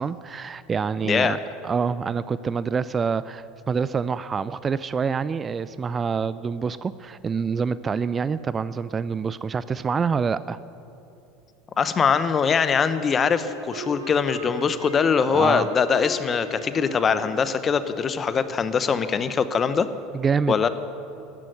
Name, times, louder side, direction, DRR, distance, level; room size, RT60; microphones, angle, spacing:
voice 1, 0.0-10.6 15.3-15.7 20.1-20.7, right 5 dB, 25° right, 16 dB, 0.4 m, -26 dB
voice 2, 1.0-1.4 11.8-19.9 20.5-20.7, left 6 dB, 30° left, 13 dB, 0.9 m, -22 dB
Wind instrument woodwind instrument, 12.9-17.6, right 2 dB, 85° right, 1.5 m, -38 dB
14.0 x 11.0 x 9.2 m, 2.8 s
hypercardioid pair, 75°, 0 cm